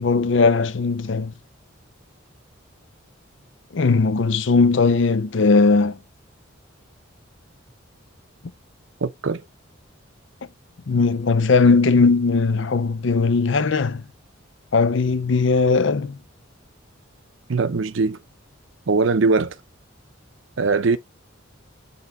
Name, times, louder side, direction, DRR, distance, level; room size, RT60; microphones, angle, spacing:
voice 1, 0.0-1.3 3.7-6.0 10.9-14.0 14.7-16.2, left 4 dB, 65° left, 0.6 m, -18 dB
voice 2, 9.0-9.4 17.5-18.2 18.9-19.6 20.6-21.0, right 4 dB, 75° right, 0.7 m, -21 dB
5.5 x 3.6 x 5.7 m
head